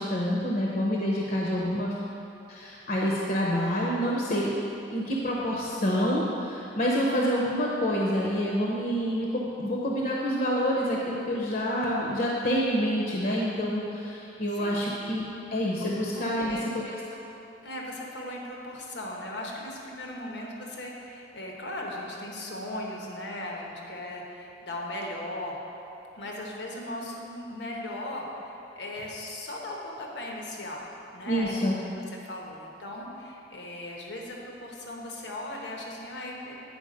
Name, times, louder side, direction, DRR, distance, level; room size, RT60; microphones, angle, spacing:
voice 1, 0.0-2.0 2.5-4.5 4.9-16.6 16.8-17.2 31.2-31.8, equal, 50° left, -3 dB, 0.8 m, -27 dB
voice 2, 16.1-16.7 17.6-25.6 26.1-30.9 31.1-31.9 32.2-36.6, left 1 dB, 85° left, -1 dB, 1.1 m, -38 dB
9.1 x 4.9 x 5.1 m, 2.9 s
head